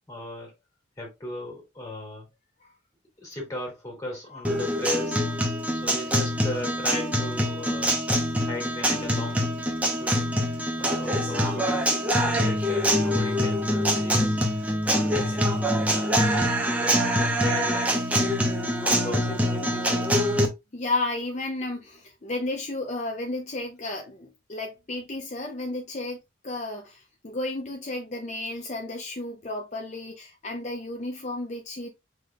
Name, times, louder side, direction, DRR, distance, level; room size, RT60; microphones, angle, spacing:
voice 1, 0.1-0.5 1.0-2.3 3.2-5.2 5.7-8.0 8.4-10.4 10.8-11.8 12.1-14.4 14.8-20.2, left 2 dB, 15° left, 2.2 m, -37 dB
voice 2, 4.1-4.8 20.7-31.9, left 2 dB, 35° left, 0.6 m, -33 dB
Guitar, 4.4-20.5, equal, 10° right, 0.8 m, -24 dB
5.7 x 3.4 x 2.3 m
head